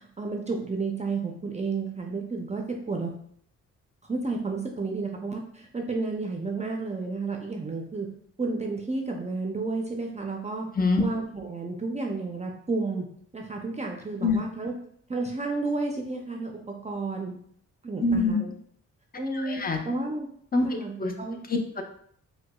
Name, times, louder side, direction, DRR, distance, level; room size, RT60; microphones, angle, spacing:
voice 1, 0.0-3.1 4.1-8.1 8.4-10.7 11.0-13.1 13.3-14.7 15.1-17.4 17.8-18.5 19.2-20.3 20.6-21.4, right 3 dB, 20° right, 1 dB, 0.5 m, -31 dB
voice 2, 18.0-18.4 19.3-19.8 20.5-21.1 21.5-21.8, left 3 dB, 30° left, 4 dB, 0.6 m, -25 dB
4.6 x 2.2 x 2.2 m, 0.64 s
cardioid pair, 70°, 31 cm